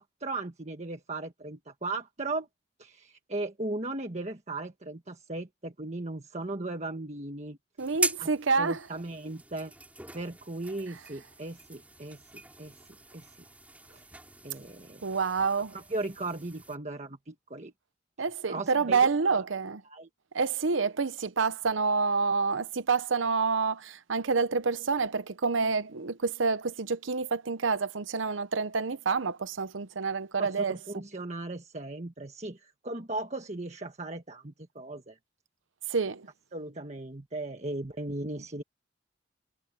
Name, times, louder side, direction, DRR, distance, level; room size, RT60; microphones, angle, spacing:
voice 1, 0.0-2.5 2.8-7.6 8.2-8.3 8.6-9.7 10.1-12.7 13.1-13.3 13.9-14.0 14.4-15.0 15.7-17.7 18.5-19.0 19.2-19.4 19.9-20.1 30.4-35.2 36.5-38.6, right 2 dB, 35° right, 1.5 m, -37 dB
sound 1, 7.8-16.8, right 2 dB, 10° right, 3.2 m, -40 dB
voice 2, 7.8-8.8 15.0-15.8 18.2-19.8 20.3-31.0 35.9-36.3, right 4 dB, 85° right, 0.8 m, -28 dB
head